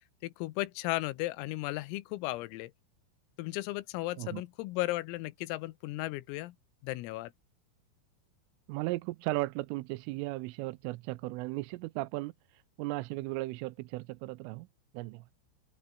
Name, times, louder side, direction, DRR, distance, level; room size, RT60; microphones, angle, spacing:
voice 1, 0.2-2.7 3.4-6.6 6.8-7.3, left 18 dB, 85° left, 3.7 m, -35 dB
voice 2, 8.7-12.3 12.8-14.7 14.9-15.2, right 20 dB, 80° right, 3.1 m, -36 dB
open air
omnidirectional pair, 6.0 m